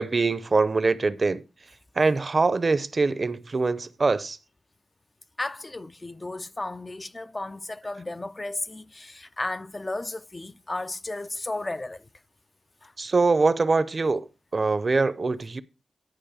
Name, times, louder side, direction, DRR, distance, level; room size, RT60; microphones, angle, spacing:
voice 1, 0.0-1.4 2.0-4.4 13.0-15.6, right 3 dB, 45° right, 0.6 m, -23 dB
voice 2, 5.4-12.1 12.8-12.9, left 2 dB, 25° left, 0.4 m, -34 dB
11.0 x 5.4 x 4.9 m
wide cardioid pair, 85°, 0 cm